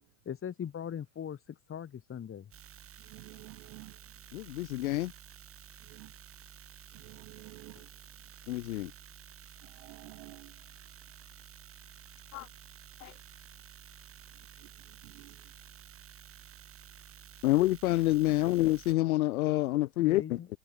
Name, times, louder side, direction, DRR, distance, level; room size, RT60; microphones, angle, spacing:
voice 1, 0.3-2.5 20.0-20.5, left 8 dB, 30° left, 4.0 m, -40 dB
sound 1, 2.5-18.9, right 9 dB, 30° right, 3.3 m, -52 dB
voice 2, 3.1-3.9 5.9-6.1 7.0-7.8 9.8-10.5 15.0-15.3, right 26 dB, 55° right, 0.6 m, -50 dB
voice 3, 4.3-5.1 8.5-8.9 12.3-12.5 13.0-13.1 17.4-20.4, left 17 dB, 70° left, 0.5 m, -27 dB
figure-of-eight pair, 80°, 44 cm